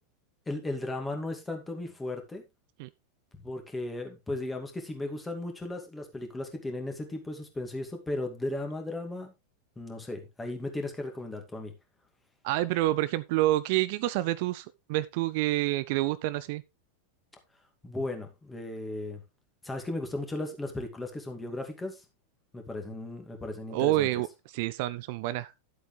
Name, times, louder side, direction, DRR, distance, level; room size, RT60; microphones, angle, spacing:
voice 1, 0.5-2.4 3.3-9.3 9.8-11.7 17.8-19.2 19.6-22.0 22.5-24.2, left 2 dB, 10° left, 2.4 m, -36 dB
voice 2, 12.4-16.6 23.7-24.3 24.5-25.5, right 16 dB, 50° right, 0.4 m, -28 dB
11.5 x 8.0 x 3.3 m
figure-of-eight pair, 90°, 0 cm